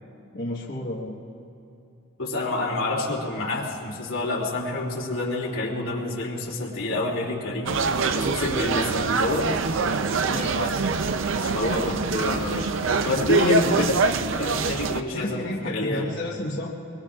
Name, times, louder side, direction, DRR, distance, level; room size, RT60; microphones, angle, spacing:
voice 1, 0.3-1.2 10.3-10.7 15.1-16.7, left 1 dB, 50° left, -4 dB, 1.4 m, -31 dB
voice 2, 2.2-7.8 8.1-9.5 11.4-12.7 13.0-14.0 14.3-16.0, left 2 dB, 85° left, -3 dB, 2.8 m, -27 dB
sound 1, 7.7-15.0, right 4 dB, 70° right, 0.6 m, -24 dB
23.5 x 23.0 x 2.5 m, 2.9 s
head